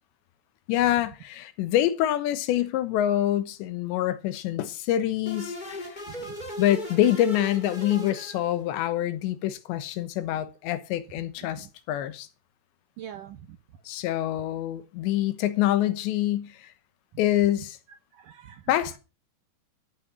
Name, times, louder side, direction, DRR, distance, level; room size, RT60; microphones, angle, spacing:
voice 1, 0.7-5.9 6.6-12.3 13.9-16.7 17.2-17.8 18.7-19.0, left 12 dB, 85° left, 3.3 m, -26 dB
sound 1, 5.3-8.8, equal, 15° left, 2.2 m, -38 dB
voice 2, 13.0-13.6 18.1-18.7, right 10 dB, 75° right, 2.0 m, -44 dB
14.0 x 9.9 x 6.1 m
omnidirectional pair, 5.1 m